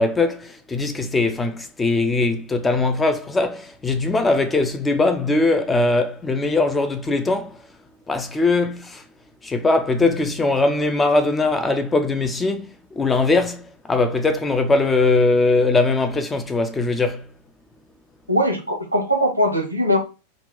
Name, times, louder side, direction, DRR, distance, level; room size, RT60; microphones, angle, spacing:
voice 1, 0.0-7.6 8.1-9.0 9.4-17.3, left 3 dB, 15° left, 0.5 m, -20 dB
voice 2, 18.3-20.0, equal, 90° right, 1.0 m, -20 dB
3.6 x 2.4 x 3.6 m
figure-of-eight pair, 90°, 0 cm